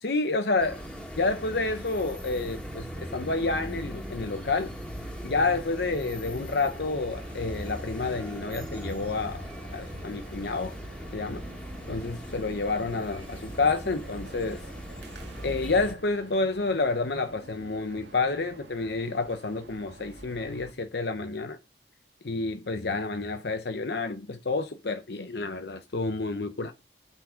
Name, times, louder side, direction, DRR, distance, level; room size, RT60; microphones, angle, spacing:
voice 1, 0.0-0.8 1.2-4.7 5.2-9.5 9.7-10.8 11.1-11.5 11.9-14.6 15.4-21.6 22.2-26.7, left 3 dB, 65° left, 0.8 m, -29 dB
sound 1, 0.6-15.9, equal, 5° left, 2.0 m, -39 dB
sound 2, 7.1-20.7, right 2 dB, 80° right, 1.9 m, -50 dB
8.6 x 6.0 x 6.2 m
head